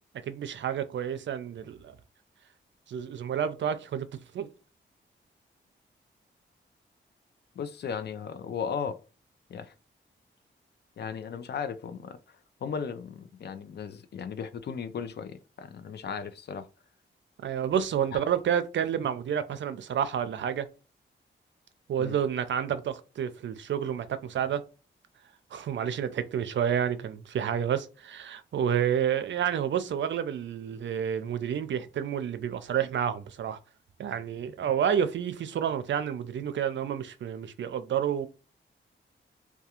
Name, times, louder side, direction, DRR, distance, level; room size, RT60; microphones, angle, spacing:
voice 1, 0.3-2.0 2.9-4.1 4.3-4.5 17.4-20.7 21.9-24.6 25.5-33.6 34.0-38.3, right 8 dB, 65° right, 0.4 m, -29 dB
voice 2, 7.6-9.0 9.5-9.7 11.0-16.7 18.1-18.2 22.0-22.2, left 6 dB, 55° left, 0.4 m, -36 dB
2.3 x 2.2 x 2.8 m
cardioid pair, 60°, 20 cm